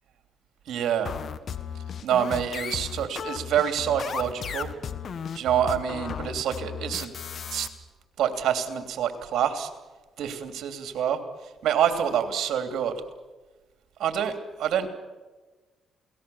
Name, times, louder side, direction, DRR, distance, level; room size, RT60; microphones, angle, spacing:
voice 1, 0.7-1.1 2.0-4.7 5.3-7.1 7.5-7.7 8.2-9.7 10.2-11.2 11.6-12.9 14.0-14.3 14.6-14.9, right 9 dB, 75° right, 7 dB, 3.0 m, -26 dB
sound 1, 1.1-7.7, left 7 dB, 55° left, 1.6 m, -35 dB
28.5 x 19.0 x 7.1 m, 1.2 s
cardioid pair, 90°, 0 cm